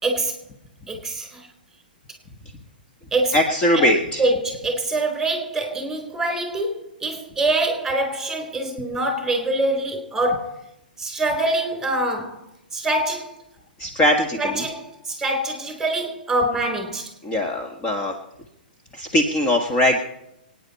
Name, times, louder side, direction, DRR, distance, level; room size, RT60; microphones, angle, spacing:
voice 1, 0.0-0.3 0.9-1.4 3.1-3.3 4.2-10.6 11.0-12.4 12.7-13.3 14.4-17.1, right 2 dB, 5° right, 4.0 m, -24 dB
voice 2, 3.3-4.2 13.8-14.6 17.2-18.1 18.9-20.0, left 1 dB, 20° left, 1.7 m, -20 dB
25.5 x 9.7 x 4.3 m
figure-of-eight pair, 120°, 5 cm